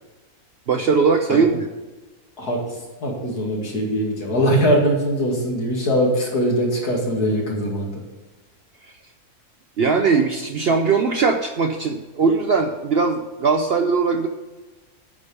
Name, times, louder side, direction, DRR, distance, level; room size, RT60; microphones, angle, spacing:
voice 1, 0.7-1.7 9.8-14.3, right 5 dB, 60° right, 5 dB, 0.7 m, -20 dB
voice 2, 2.4-8.0, equal, 80° left, -2 dB, 2.9 m, -22 dB
8.8 x 5.2 x 6.6 m, 1.2 s
omnidirectional pair, 1.6 m